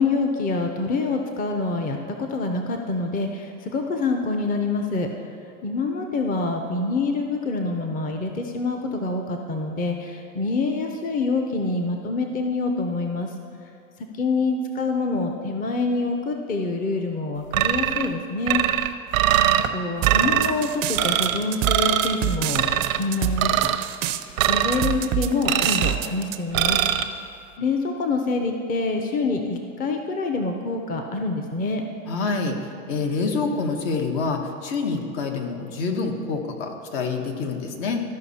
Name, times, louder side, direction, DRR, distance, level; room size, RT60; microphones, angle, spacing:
voice 1, 0.0-5.1 5.6-13.3 14.1-18.6 19.7-23.7 24.5-26.9 27.6-31.8, left 3 dB, 20° left, 4 dB, 0.6 m, -26 dB
sound 1, 17.5-18.1 18.5-19.7 20.0-20.5 21.0-21.4 21.6-22.2 22.5-23.0 23.4-23.8 24.4-24.9 25.5-26.0 26.5-27.0, right 11 dB, 90° right, 0.7 m, -21 dB
sound 2, 20.0-26.4, right 14 dB, 40° right, 0.4 m, -27 dB
voice 2, 32.1-38.0, left 4 dB, 60° left, 3 dB, 1.4 m, -27 dB
14.0 x 5.4 x 4.2 m, 2.5 s
supercardioid pair, 120°, 40 cm